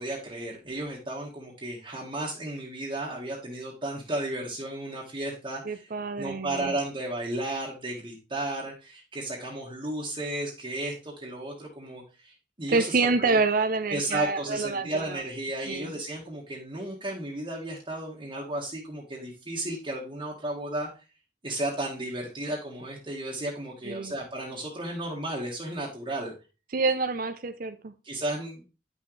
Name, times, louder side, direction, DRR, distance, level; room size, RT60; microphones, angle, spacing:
voice 1, 0.0-5.9 6.2-12.3 12.6-13.4 13.9-20.9 21.4-26.3 28.0-28.7, right 1 dB, 30° right, -3 dB, 1.6 m, -34 dB
voice 2, 5.6-6.7 12.7-15.2 15.7-15.9 23.8-24.1 26.7-27.9, right 3 dB, 50° right, 9 dB, 0.6 m, -27 dB
10.0 x 6.2 x 3.3 m, 0.31 s
head